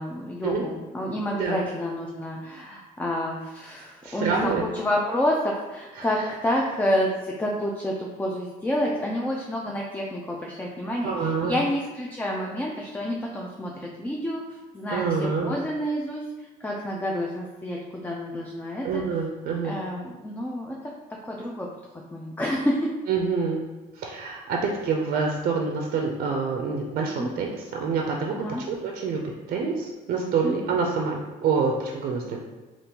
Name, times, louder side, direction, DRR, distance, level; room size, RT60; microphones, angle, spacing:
voice 1, 0.0-19.0 19.6-20.9 21.2-21.7 22.1-22.9 27.2-27.3 28.3-28.6 30.4-30.6, equal, 10° left, -1 dB, 0.3 m, -29 dB
voice 2, 4.0-4.6 6.0-6.3 11.0-11.6 14.9-15.6 18.8-19.8 23.1-23.6 23.9-32.4, right 5 dB, 55° right, 0 dB, 0.5 m, -27 dB
3.5 x 2.5 x 2.8 m, 1.1 s
cardioid pair, 110°, 17 cm